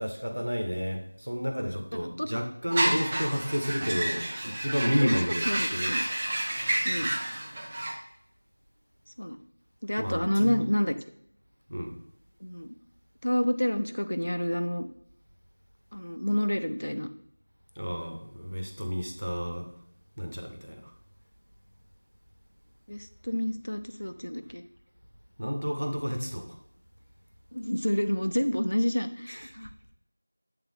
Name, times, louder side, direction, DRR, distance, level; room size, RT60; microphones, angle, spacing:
voice 1, 0.0-6.0 10.0-10.7 11.7-12.0 17.7-19.7 20.2-20.9 25.4-26.6 29.3-29.4, equal, 90° right, 5 dB, 1.3 m, -31 dB
sound 1, 2.7-7.9, right 1 dB, 15° right, 0.4 m, -30 dB
voice 2, 5.5-6.1 6.8-7.1 9.2-9.4 9.8-10.9 12.4-12.7 13.2-14.9 15.9-17.1 22.9-24.6 27.5-29.9, equal, 75° left, 9 dB, 0.6 m, -29 dB
7.8 x 3.6 x 3.6 m, 0.72 s
figure-of-eight pair, 175°, 0 cm